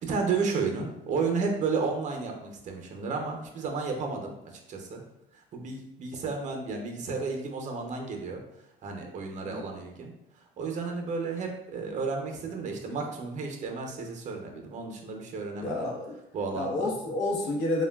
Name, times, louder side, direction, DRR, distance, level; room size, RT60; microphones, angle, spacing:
voice 1, 0.0-4.3 4.7-5.0 5.3-8.4 8.8-10.1 10.6-15.9 16.3-16.9, right 4 dB, 45° right, 2 dB, 0.6 m, -32 dB
voice 2, 15.6-16.2 16.5-17.8, left 2 dB, 85° left, -2 dB, 0.7 m, -29 dB
3.2 x 2.2 x 2.2 m, 0.85 s
cardioid pair, 110°, 17 cm